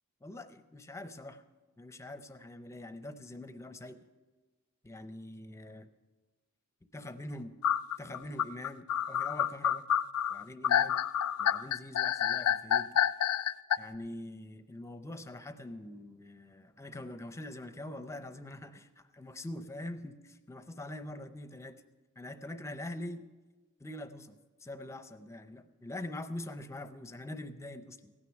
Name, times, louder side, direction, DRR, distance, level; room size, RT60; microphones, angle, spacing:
voice 1, 0.2-1.4 1.8-4.1 4.8-5.9 6.9-7.6 8.0-9.9 10.3-11.0 11.4-12.9 13.8-21.8 22.2-23.2 23.8-28.1, left 1 dB, 15° left, 9 dB, 0.6 m, -44 dB
sound 1, 7.6-13.8, left 9 dB, 85° left, 0.4 m, -28 dB
16.0 x 9.5 x 5.9 m, 1.2 s
head